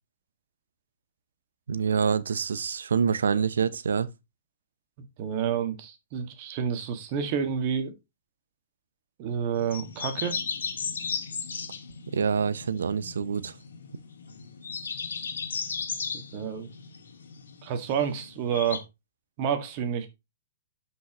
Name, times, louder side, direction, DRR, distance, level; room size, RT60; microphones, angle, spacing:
voice 1, 1.7-4.1 12.1-13.5, right 6 dB, 85° right, 0.7 m, -26 dB
voice 2, 5.2-7.9 9.2-10.4 16.1-16.7 17.6-18.8 19.4-20.1, right 8 dB, 40° right, 1.8 m, -29 dB
sound 1, 9.6-18.8, left 6 dB, 85° left, 1.9 m, -36 dB
11.5 x 5.5 x 3.0 m
hypercardioid pair, 140°, 0 cm